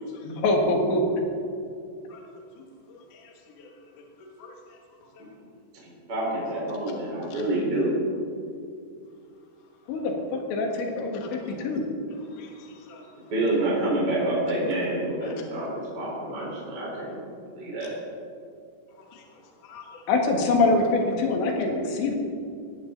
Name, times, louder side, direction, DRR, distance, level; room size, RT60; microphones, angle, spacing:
voice 1, 0.2-1.0 9.9-10.0 10.5-11.2 11.6-11.8 20.1-22.1, left 2 dB, 90° left, 2 dB, 4.3 m, -23 dB
voice 2, 2.9-3.3 3.6-3.7 4.4-4.5 7.3-7.4 11.2-11.3 12.3-13.0 15.2-15.3 19.1-19.2 19.6-20.0, left 6 dB, 60° left, 1 dB, 2.5 m, -48 dB
voice 3, 5.8-8.0 13.3-17.2 17.5-17.9, right 1 dB, 25° right, -6 dB, 4.7 m, -27 dB
19.0 x 16.0 x 4.0 m, 2.4 s
omnidirectional pair, 5.0 m